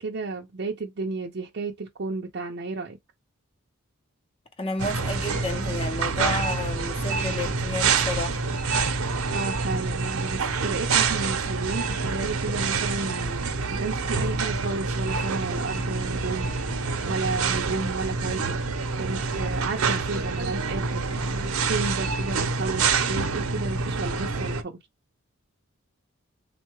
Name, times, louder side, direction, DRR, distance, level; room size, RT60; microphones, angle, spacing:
voice 1, 0.0-3.0 9.3-16.7 17.1-18.6 19.0-24.8, right 3 dB, 50° right, 0.5 m, -33 dB
voice 2, 4.6-8.4, left 2 dB, 25° left, 0.6 m, -31 dB
sound 1, 4.8-24.6, right 4 dB, 85° right, 0.7 m, -27 dB
3.6 x 2.2 x 3.1 m
head